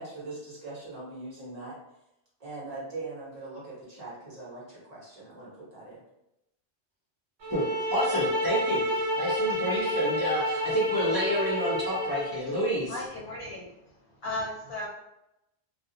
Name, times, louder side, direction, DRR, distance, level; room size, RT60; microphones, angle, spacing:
voice 1, 0.0-1.8 2.4-6.0, right 2 dB, 40° right, -7 dB, 1.0 m, -41 dB
sound 1, 7.4-12.4, equal, 75° right, 0.9 m, -29 dB
voice 2, 7.9-12.9, equal, 30° left, -7 dB, 0.4 m, -29 dB
voice 3, 12.9-14.9, left 2 dB, 65° left, -4 dB, 0.7 m, -36 dB
2.3 x 2.0 x 2.7 m, 0.88 s
omnidirectional pair, 1.1 m